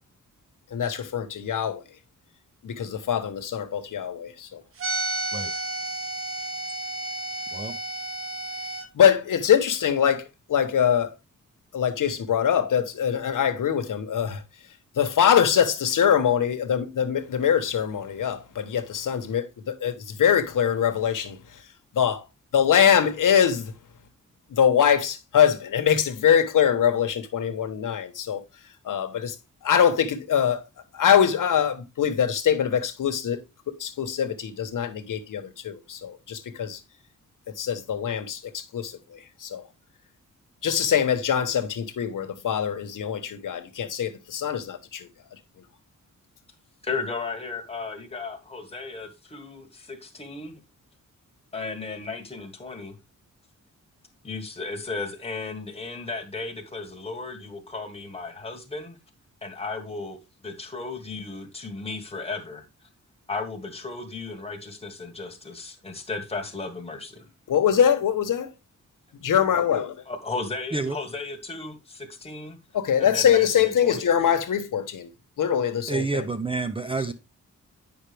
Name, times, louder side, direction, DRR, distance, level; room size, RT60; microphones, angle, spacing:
voice 1, 0.7-1.8 2.6-4.6 8.9-11.1 11.7-14.4 15.0-21.4 21.9-22.2 22.5-23.7 24.5-28.4 28.8-29.3 29.6-30.6 30.9-33.4 33.8-36.8 37.6-39.6 40.6-45.1 67.5-68.5 69.2-69.9 72.7-75.1 75.4-76.2, left 8 dB, 85° left, 1.1 m, -23 dB
sound 1, 4.8-8.9, right 2 dB, 45° right, 1.0 m, -31 dB
voice 2, 46.8-50.6 51.5-52.9 54.2-59.0 59.4-60.2 60.4-62.6 63.3-67.3 70.1-72.6 73.0-74.1, left 3 dB, 20° left, 1.4 m, -35 dB
voice 3, 75.9-77.1, right 3 dB, 15° right, 0.4 m, -28 dB
8.9 x 5.5 x 3.3 m
wide cardioid pair, 150°, 31 cm